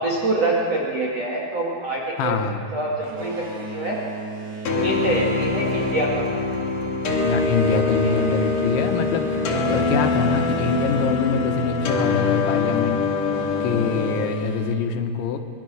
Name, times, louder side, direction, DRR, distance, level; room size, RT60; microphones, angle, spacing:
voice 1, 0.0-2.4 2.7-4.0 4.7-6.2 8.0-8.1 9.7-9.8, right 2 dB, 45° right, -2 dB, 2.7 m, -25 dB
voice 2, 2.2-2.6 7.2-13.0 13.6-15.4, left 6 dB, 90° left, 4 dB, 3.7 m, -25 dB
Boat Water vehicle, 2.9-12.4 13.1-14.7, right 4 dB, 65° right, 5.2 m, -36 dB
sound 1, 4.7-14.3, left 4 dB, 50° left, 3.5 m, -23 dB
25.0 x 22.5 x 6.5 m, 2.3 s
omnidirectional pair, 5.1 m